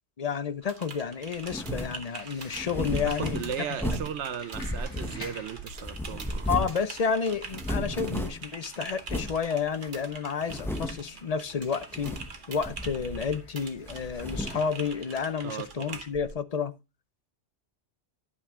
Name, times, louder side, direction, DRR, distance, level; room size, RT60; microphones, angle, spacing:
voice 1, 0.2-3.5 3.9-4.0 6.5-12.2 12.5-16.7, left 6 dB, 40° left, 0.6 m, -30 dB
Typing, 0.6-16.3, right 4 dB, 50° right, 1.1 m, -44 dB
sound 1, 0.8-15.7, left 2 dB, 70° left, 2.6 m, -53 dB
sound 2, 1.4-2.0 2.5-4.2 4.5-5.5 5.8-6.8 7.1-7.2 7.5-8.5 9.0-9.4 9.9-10.0 10.4-11.1 11.8-12.3 12.6-13.5 13.8-14.7, equal, ahead, 0.8 m, -34 dB
voice 2, 3.2-6.5 15.4-16.0, right 8 dB, 85° right, 1.1 m, -36 dB
11.0 x 5.7 x 3.6 m
omnidirectional pair, 1.1 m